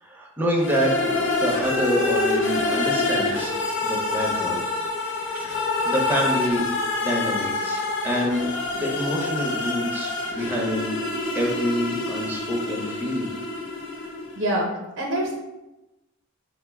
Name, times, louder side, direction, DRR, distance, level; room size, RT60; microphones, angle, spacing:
voice 1, 0.0-3.5 3.8-4.6 5.3-6.6 7.0-8.5 8.7-10.9 11.3-13.3, equal, 10° right, -2 dB, 0.7 m, -27 dB
sound 1, 0.6-14.4, left 3 dB, 65° left, 0.6 m, -26 dB
voice 2, 14.3-14.7 15.0-15.3, right 1 dB, 80° right, -1 dB, 0.6 m, -24 dB
5.1 x 2.0 x 3.4 m, 0.98 s
head